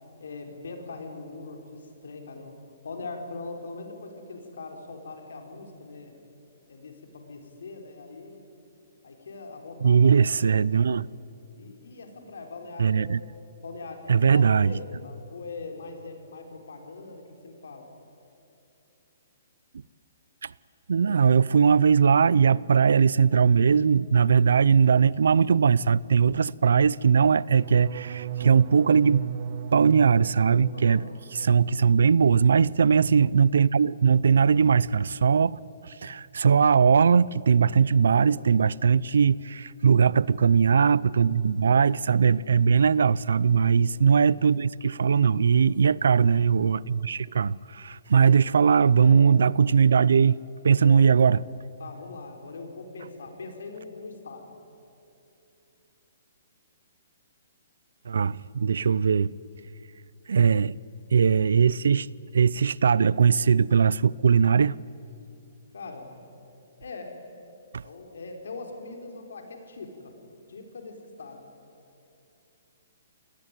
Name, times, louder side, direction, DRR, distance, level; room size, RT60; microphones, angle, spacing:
voice 1, 0.2-2.6 2.8-6.2 6.7-8.4 9.0-10.2 10.4-10.5 11.6-13.1 13.6-17.9 30.7-31.1 38.0-38.5 41.1-41.5 43.5-44.0 49.0-49.3 50.8-51.1 51.8-54.4 65.7-66.1 66.8-67.2 67.8-70.1 70.5-71.4, left 3 dB, 80° left, 4.7 m, -41 dB
voice 2, 9.8-11.1 12.8-13.2 14.1-14.7 20.4-20.5 20.9-29.2 29.7-31.0 31.3-50.4 50.6-51.4 58.1-59.3 60.3-60.8 61.1-62.1 62.3-64.8 67.7-67.8, right 6 dB, 80° right, 0.5 m, -20 dB
sound 1, 27.4-33.3 33.6-34.1 34.4-34.8, right 9 dB, 50° right, 1.2 m, -37 dB
27.5 x 19.0 x 9.2 m
hypercardioid pair, 155°, 0 cm